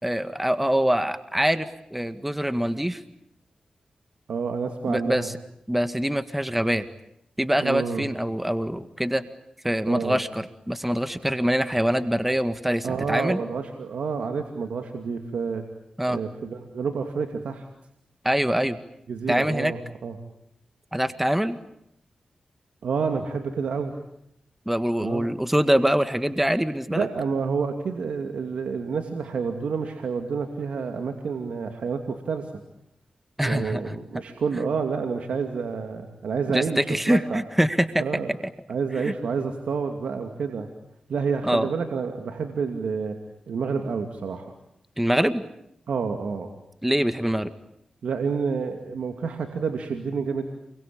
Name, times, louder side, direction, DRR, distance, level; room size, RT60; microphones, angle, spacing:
voice 1, 0.0-3.0 4.9-5.3 5.7-6.8 7.4-9.2 9.6-13.4 16.0-16.2 18.2-18.8 19.3-19.7 20.9-21.6 24.7-27.1 33.4-34.0 36.5-38.0 39.0-39.1 41.4-41.7 45.0-45.4 46.8-47.5, equal, 10° right, 10 dB, 1.9 m, -24 dB
voice 2, 4.3-5.3 7.6-8.0 9.9-10.2 12.8-15.6 16.1-17.7 19.1-20.2 22.8-23.9 25.0-25.3 26.9-32.5 33.4-37.4 38.0-38.3 38.7-40.7 41.1-43.2 43.5-44.5 45.9-46.5 48.0-50.4, right 5 dB, 85° right, 5 dB, 2.5 m, -29 dB
28.5 x 23.0 x 8.8 m, 0.79 s
cardioid pair, 45°, 2 cm